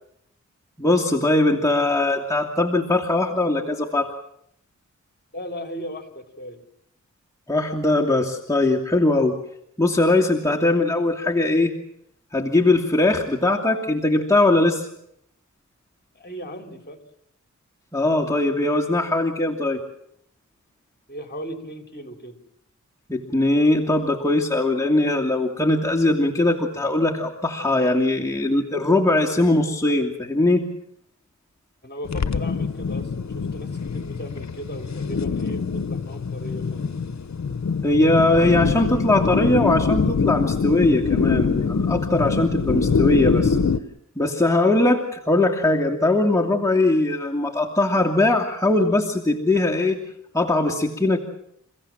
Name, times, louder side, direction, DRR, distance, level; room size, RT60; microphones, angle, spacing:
voice 1, 0.8-4.1 7.5-9.3 9.8-11.7 12.3-14.9 17.9-19.8 23.1-30.7 37.8-43.6 44.2-50.0 50.3-51.2, left 2 dB, 10° left, -1 dB, 2.6 m, -20 dB
voice 2, 5.3-6.6 16.1-17.0 21.1-22.4 31.8-36.9, equal, 35° left, 6 dB, 3.8 m, -37 dB
sound 1, 32.0-43.8, left 5 dB, 60° left, 1.0 m, -24 dB
30.0 x 16.0 x 7.5 m, 0.73 s
wide cardioid pair, 50°, 31 cm